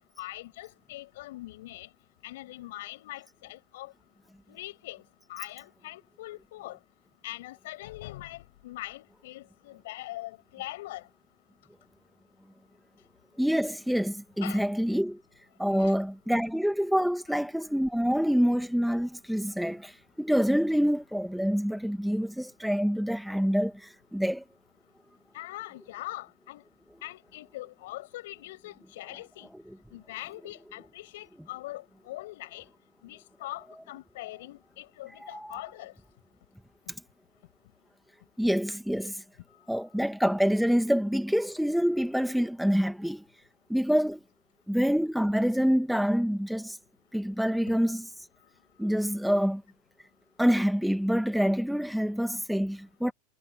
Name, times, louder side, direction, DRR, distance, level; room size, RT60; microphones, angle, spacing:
voice 1, 0.0-1.9 2.2-3.9 4.5-5.0 5.3-6.8 7.2-11.1 14.4-14.6 15.7-15.9 18.0-18.1 25.3-26.6 27.0-29.5 29.9-32.7 33.0-35.9, left 17 dB, 70° left, 8.0 m, -42 dB
voice 2, 13.4-15.2 15.6-19.9 20.2-24.4 35.2-35.6 38.4-39.2 39.7-43.3 43.7-44.2 44.7-46.8 47.1-48.1 48.8-49.6 50.4-53.1, equal, ahead, 2.0 m, -26 dB
hypercardioid pair, 105°, 0 cm